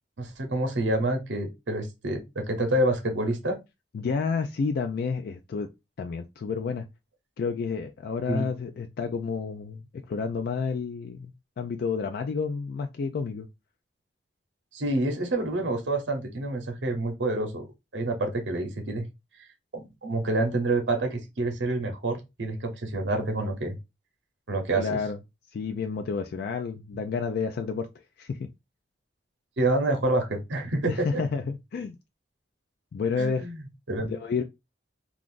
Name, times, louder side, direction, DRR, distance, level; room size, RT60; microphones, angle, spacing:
voice 1, 0.2-3.6 8.3-8.5 14.7-17.7 17.9-19.1 19.7-23.8 24.5-25.0 29.6-31.2 33.2-33.6 33.9-34.1, right 2 dB, 90° right, 0.8 m, -28 dB
voice 2, 3.9-5.7 6.0-6.8 7.4-13.5 24.8-25.2 25.5-27.9 28.2-28.4 30.9-31.9 32.9-33.5 34.0-34.4, left 5 dB, 55° left, 0.3 m, -30 dB
2.5 x 2.4 x 3.6 m
head